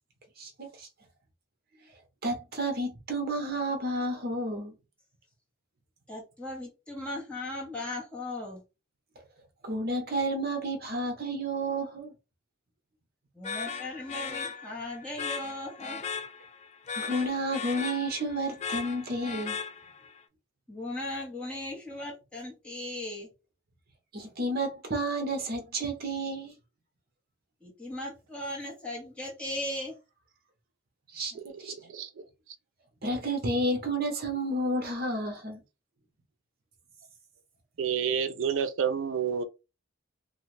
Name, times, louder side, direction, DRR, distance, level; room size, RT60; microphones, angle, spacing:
voice 1, 0.4-0.9 2.2-4.7 9.6-12.1 17.0-19.6 24.1-26.5 31.1-31.3 31.6-31.7 33.0-35.6, right 1 dB, 50° right, 0.8 m, -31 dB
voice 2, 6.1-8.6 13.3-16.0 20.7-23.3 27.6-30.0, left 1 dB, 5° left, 1.2 m, -37 dB
sound 1, 13.4-20.2, left 6 dB, 35° left, 0.3 m, -38 dB
voice 3, 31.7-32.2 37.8-39.4, right 7 dB, 70° right, 0.4 m, -29 dB
2.5 x 2.3 x 3.2 m
head